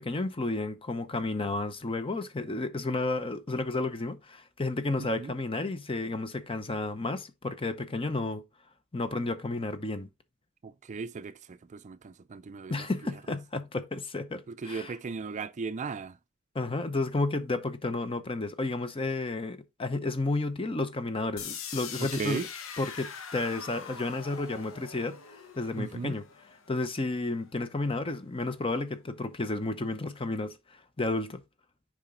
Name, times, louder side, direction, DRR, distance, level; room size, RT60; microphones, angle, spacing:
voice 1, 0.0-8.4 8.9-10.1 12.7-14.9 16.5-22.4 22.8-26.2 26.7-30.6 31.0-31.4, left 2 dB, 25° left, 0.8 m, -32 dB
voice 2, 5.0-5.3 10.6-12.9 13.3-13.4 14.5-16.2 22.1-22.5 25.8-26.2, right 4 dB, 35° right, 0.4 m, -37 dB
sound 1, 21.4-27.3, left 7 dB, 70° left, 1.0 m, -43 dB
7.3 x 4.9 x 3.7 m
head